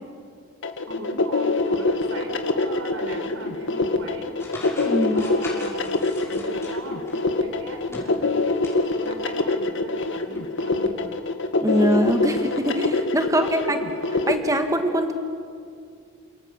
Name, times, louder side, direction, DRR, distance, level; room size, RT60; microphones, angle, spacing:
sound 1, 0.6-14.3, left 3 dB, 65° left, 2.0 m, -24 dB
voice 1, 0.9-4.4 5.1-6.0 6.3-8.5 9.0-11.2 13.2-13.3 13.6-13.7, right 2 dB, 80° right, 5 dB, 4.4 m, -39 dB
sound 2, 4.4-7.2 7.7-8.8 9.1-9.2 10.3-10.4, left 2 dB, 15° left, 6.4 m, -39 dB
voice 2, 4.8-5.3 11.6-13.8 14.3-15.1, equal, 15° right, 5 dB, 1.6 m, -23 dB
29.5 x 27.0 x 7.5 m, 2.2 s
head